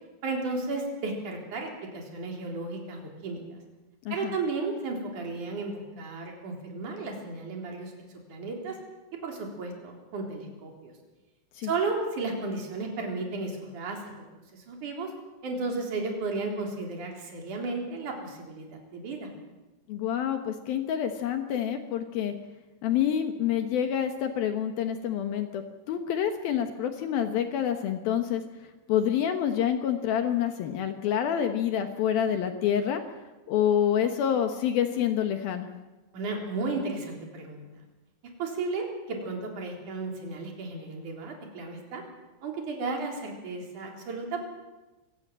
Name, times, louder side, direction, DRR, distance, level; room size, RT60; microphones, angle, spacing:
voice 1, 0.2-3.6 4.1-7.9 8.3-8.8 9.2-10.9 11.6-14.0 14.5-15.1 15.4-19.3 36.1-37.7 38.4-42.0 42.4-44.5, right 3 dB, 40° right, 1 dB, 4.8 m, -34 dB
voice 2, 19.9-22.3 22.8-28.4 28.9-33.0 33.5-35.7, left 9 dB, 75° left, 7 dB, 2.2 m, -27 dB
26.5 x 16.5 x 7.6 m, 1.1 s
omnidirectional pair, 6.0 m